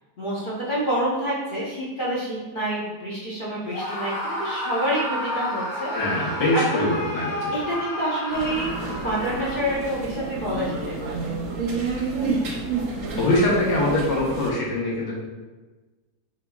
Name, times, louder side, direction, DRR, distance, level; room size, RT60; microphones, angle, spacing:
voice 1, 0.2-5.9 6.5-6.9 7.5-8.7 9.0-11.3, right 1 dB, 40° left, -7 dB, 0.8 m, -27 dB
Screaming, 3.7-9.9, left 1 dB, 60° left, 1.7 m, -31 dB
voice 2, 5.9-7.5 13.2-15.1, left 1 dB, 80° left, -7 dB, 1.7 m, -23 dB
sound 1, 8.3-14.5, right 4 dB, 60° right, 0.9 m, -29 dB
5.0 x 3.5 x 2.3 m, 1.3 s
omnidirectional pair, 1.8 m